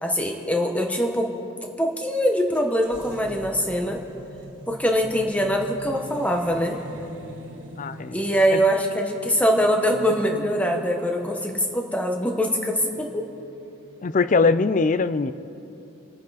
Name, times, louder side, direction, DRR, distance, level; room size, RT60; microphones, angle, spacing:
voice 1, 0.0-1.3 1.6-4.0 4.7-6.8 8.1-13.3, equal, 5° left, 2 dB, 1.1 m, -23 dB
sound 1, 2.5-14.7, equal, 60° right, 1.6 m, -44 dB
voice 2, 7.7-8.2 8.5-8.6 14.0-15.3, left 4 dB, 40° left, 14 dB, 0.4 m, -21 dB
28.0 x 9.6 x 4.1 m, 2.9 s
head